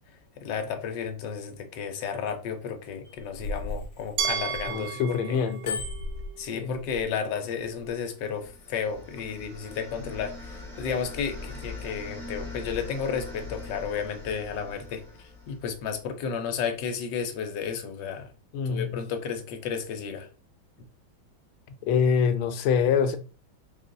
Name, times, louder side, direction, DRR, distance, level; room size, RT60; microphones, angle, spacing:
voice 1, 0.4-5.4 6.4-18.3 18.6-20.3, left 6 dB, 70° left, 1.3 m, -33 dB
Bicycle bell, 3.1-5.0 5.4-7.0 7.7-7.9, left 2 dB, 40° left, 0.9 m, -35 dB
Glass, 4.2-7.1, right 8 dB, 80° right, 1.4 m, -34 dB
voice 2, 4.7-5.9 6.5-6.8 18.5-19.0 21.8-23.2, left 6 dB, 85° left, 1.4 m, -25 dB
sound 1, 8.0-16.0, left 2 dB, ahead, 0.9 m, -42 dB
4.0 x 2.5 x 3.8 m
omnidirectional pair, 2.2 m